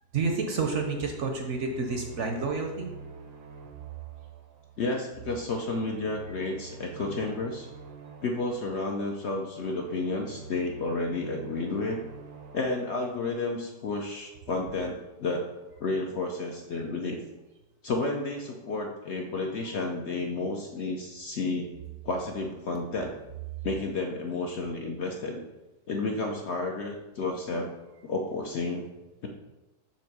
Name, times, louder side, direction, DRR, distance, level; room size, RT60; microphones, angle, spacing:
voice 1, 0.1-2.9, right 4 dB, 60° right, 3 dB, 0.9 m, -29 dB
sound 1, 1.1-14.2, right 4 dB, 80° right, 1.3 m, -47 dB
voice 2, 4.8-7.7 8.2-12.0 12.5-15.5 15.8-17.2 17.8-21.7 22.0-23.1 23.6-25.4 25.9-27.7 28.0-28.8 29.2-29.3, left 3 dB, 55° left, 1 dB, 0.8 m, -31 dB
7.1 x 3.1 x 6.0 m, 1.0 s
omnidirectional pair, 1.7 m